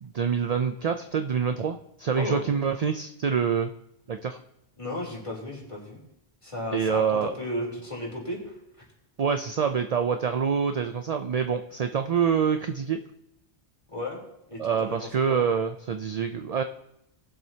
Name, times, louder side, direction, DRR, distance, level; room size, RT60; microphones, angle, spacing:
voice 1, 0.0-3.7 4.1-4.4 6.7-7.3 9.2-13.0 14.6-16.6, right 6 dB, 50° right, 7 dB, 0.5 m, -26 dB
voice 2, 4.8-6.0 6.4-8.8 13.9-14.2 14.5-14.9 15.3-15.4, left 1 dB, 30° left, -4 dB, 3.4 m, -34 dB
19.5 x 7.5 x 2.8 m, 0.83 s
omnidirectional pair, 1.1 m